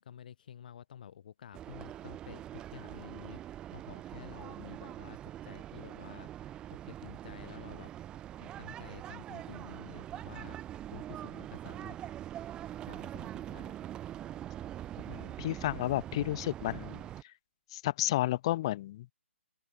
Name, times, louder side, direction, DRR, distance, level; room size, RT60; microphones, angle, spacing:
voice 1, 0.0-6.3 6.7-7.9 8.4-12.0 12.8-13.9, left 9 dB, 40° left, 4.1 m, -51 dB
sound 1, 1.5-17.2, right 12 dB, 10° right, 1.0 m, -43 dB
voice 2, 15.1-17.0 17.7-19.1, left 15 dB, 25° left, 0.4 m, -32 dB
open air
figure-of-eight pair, 135°, 7 cm